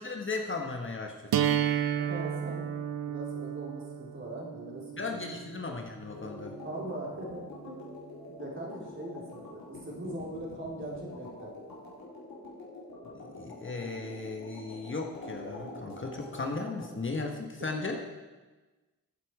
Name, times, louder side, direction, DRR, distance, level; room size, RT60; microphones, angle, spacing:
voice 1, 0.0-1.5 5.0-6.6 13.1-18.0, left 3 dB, 35° left, 2 dB, 1.4 m, -36 dB
sound 1, 1.3-7.3, right 10 dB, 80° right, 0.8 m, -33 dB
voice 2, 2.0-2.8 3.1-5.1 6.6-8.0 8.4-11.5 17.6-17.7, right 1 dB, 35° right, -4 dB, 4.1 m, -41 dB
sound 2, 6.1-16.9, left 2 dB, 70° left, 4.4 m, -46 dB
14.5 x 8.4 x 4.9 m, 1.3 s
cardioid pair, 65°, 36 cm